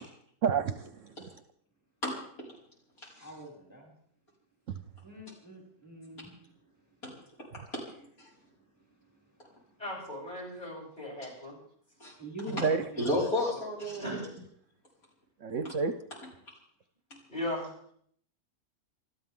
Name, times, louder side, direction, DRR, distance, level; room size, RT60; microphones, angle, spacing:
voice 1, 0.4-1.1 12.6-12.8 15.4-15.9, right 5 dB, 60° right, 10 dB, 1.1 m, -29 dB
voice 2, 2.0-2.5 7.0-7.1 7.7-7.8 8.2-8.3 12.0-12.1 13.0-14.2, left 1 dB, 70° left, -4 dB, 6.1 m, -31 dB
voice 3, 3.2-3.9 5.0-6.5 11.3-11.4 12.2-13.2, right 1 dB, 10° left, -2 dB, 6.2 m, -44 dB
voice 4, 9.8-11.6 14.0-14.2 17.3-17.7, left 1 dB, 30° left, -4 dB, 8.1 m, -37 dB
28.5 x 13.0 x 3.8 m, 0.65 s
omnidirectional pair, 1.6 m